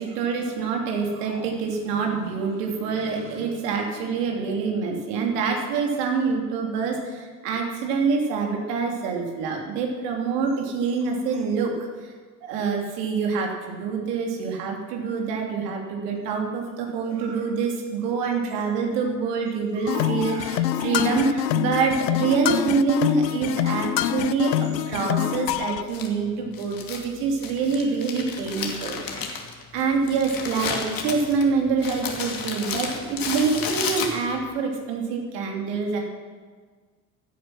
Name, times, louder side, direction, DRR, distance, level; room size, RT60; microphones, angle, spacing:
voice 1, 0.0-12.1 12.4-29.4 29.7-36.0, right 5 dB, 70° right, 1 dB, 3.0 m, -26 dB
sound 1, 19.9-25.8, left 12 dB, 85° left, 0.7 m, -25 dB
Crumpling crinkling, 25.9-34.5, left 5 dB, 45° left, 2.6 m, -32 dB
16.0 x 10.0 x 6.1 m, 1.5 s
hypercardioid pair, 75°, 49 cm